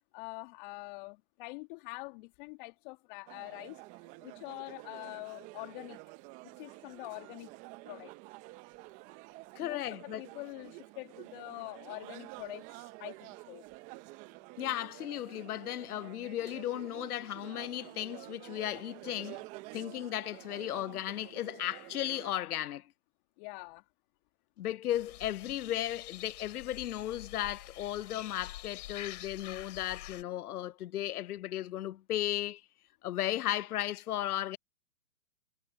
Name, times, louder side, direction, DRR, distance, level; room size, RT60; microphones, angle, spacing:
voice 1, 0.1-3.8 4.2-6.0 6.6-7.5 7.9-8.1 9.6-9.9 10.2-13.7 23.4-23.9, left 28 dB, 35° left, 1.9 m, -45 dB
sound 1, 3.3-22.3, right 22 dB, 15° right, 0.6 m, -50 dB
voice 2, 9.6-10.2 14.6-19.4 19.7-22.9 24.6-32.6 33.0-34.6, left 12 dB, 70° left, 0.6 m, -35 dB
sound 2, 24.9-30.2, left 14 dB, 50° left, 4.1 m, -47 dB
hypercardioid pair, 135°, 46 cm